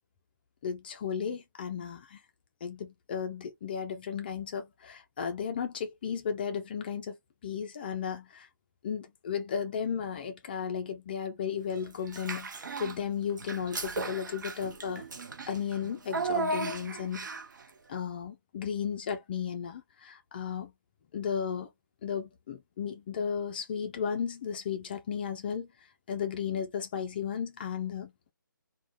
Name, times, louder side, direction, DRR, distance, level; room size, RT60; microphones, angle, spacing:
voice 1, 0.6-2.2 2.6-7.2 7.4-8.5 8.8-15.1 15.5-17.3 17.9-20.7 21.1-21.7 22.0-25.7 26.1-28.1, left 7 dB, 30° left, 0.3 m, -34 dB
Child speech kid speaking / Bathtub (filling or washing), 12.1-13.0 13.4-17.6, right 3 dB, 60° right, 0.6 m, -35 dB
2.4 x 2.1 x 3.2 m
figure-of-eight pair, 150°, 11 cm